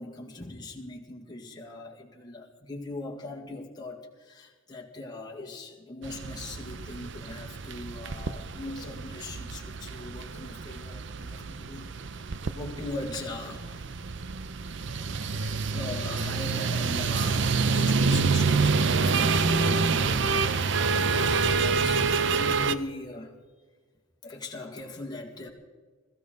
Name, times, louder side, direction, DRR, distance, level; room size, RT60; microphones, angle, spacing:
voice 1, 0.0-12.3 12.5-13.9 15.2-23.3 24.2-25.5, left 2 dB, 20° left, -1 dB, 1.9 m, -40 dB
sound 1, 6.0-22.8, right 4 dB, 60° right, 0.7 m, -27 dB
21.5 x 14.5 x 3.9 m, 1.5 s
head